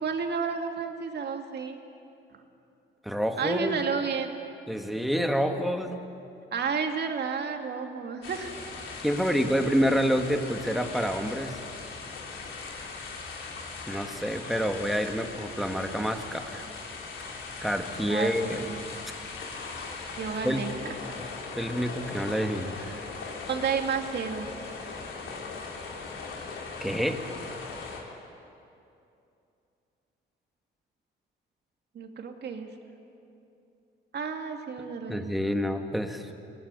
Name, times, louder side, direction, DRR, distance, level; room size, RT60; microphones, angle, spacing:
voice 1, 0.0-1.8 3.4-4.4 6.5-8.5 18.1-18.8 20.2-21.2 23.5-24.5 31.9-32.7 34.1-35.3, right 6 dB, 55° right, 4 dB, 2.5 m, -31 dB
voice 2, 3.0-3.8 4.7-6.0 9.0-11.6 13.9-16.6 17.6-18.6 20.4-20.6 21.6-23.0 26.8-27.2 35.1-36.3, equal, ahead, 5 dB, 2.0 m, -28 dB
sound 1, 8.2-28.0, left 4 dB, 80° left, 4.1 m, -39 dB
23.5 x 18.0 x 9.9 m, 2.7 s
cardioid pair, 90°, 20 cm